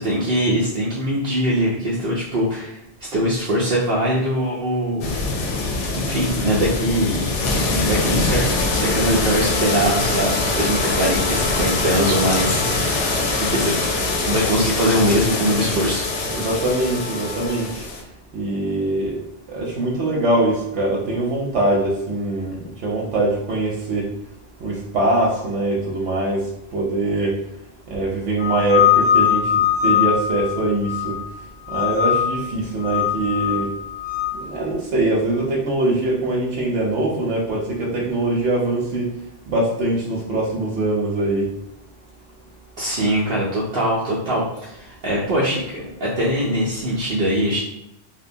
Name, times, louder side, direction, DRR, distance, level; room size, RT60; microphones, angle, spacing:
voice 1, 0.0-5.2 6.0-13.8 14.2-16.1 42.8-47.6, equal, 60° right, -6 dB, 0.7 m, -22 dB
sound 1, 5.0-18.0, left 3 dB, 90° left, 0.9 m, -23 dB
Wind instrument woodwind instrument, 8.5-17.7, right 1 dB, 35° left, 0.4 m, -33 dB
voice 2, 16.3-17.7 18.3-19.2 19.5-24.1 24.6-27.4 27.9-31.1 31.7-33.7 34.5-39.0 39.5-41.5, right 2 dB, 90° right, -4 dB, 0.9 m, -22 dB
sound 2, 28.4-31.3 31.7-32.4 32.8-34.3, left 9 dB, 65° left, 0.8 m, -20 dB
2.8 x 2.1 x 2.6 m, 0.85 s
omnidirectional pair, 1.2 m